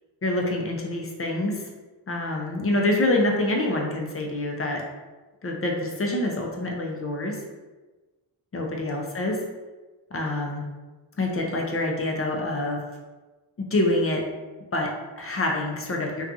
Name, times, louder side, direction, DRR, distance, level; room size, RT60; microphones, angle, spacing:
voice 1, 0.2-1.7 2.1-4.8 5.4-7.4 8.5-9.4 10.1-10.6 11.2-12.8 13.6-14.2 14.7-16.2, left 1 dB, 30° left, 0 dB, 0.5 m, -26 dB
2.5 x 2.3 x 2.5 m, 1.2 s
cardioid pair, 55°, 47 cm